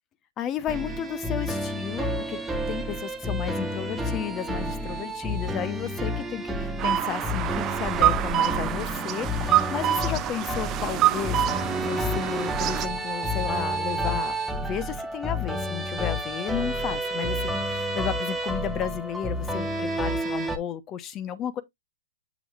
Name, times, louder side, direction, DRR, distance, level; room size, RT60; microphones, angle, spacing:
voice 1, 0.4-21.6, left 9 dB, 30° left, 0.9 m, -33 dB
sound 1, 0.7-20.6, equal, 5° right, 1.1 m, -30 dB
sound 2, 6.8-12.9, right 12 dB, 30° right, 0.6 m, -26 dB
7.2 x 6.0 x 2.4 m
hypercardioid pair, 120°, 0 cm